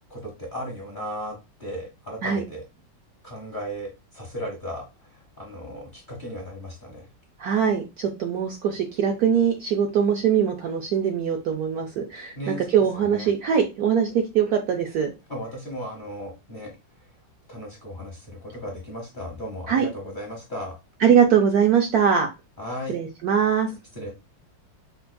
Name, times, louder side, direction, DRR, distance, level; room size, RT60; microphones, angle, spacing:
voice 1, 0.1-2.6 3.2-7.1 12.4-12.6 13.0-13.3 15.3-16.7 17.5-20.8 22.6-23.0 23.9-24.1, equal, 35° left, -1 dB, 0.8 m, -36 dB
voice 2, 7.4-15.1 19.7-19.9 21.0-22.3 22.9-23.7, right 7 dB, 70° right, 3 dB, 0.9 m, -22 dB
5.1 x 2.3 x 2.2 m, 0.25 s
omnidirectional pair, 2.0 m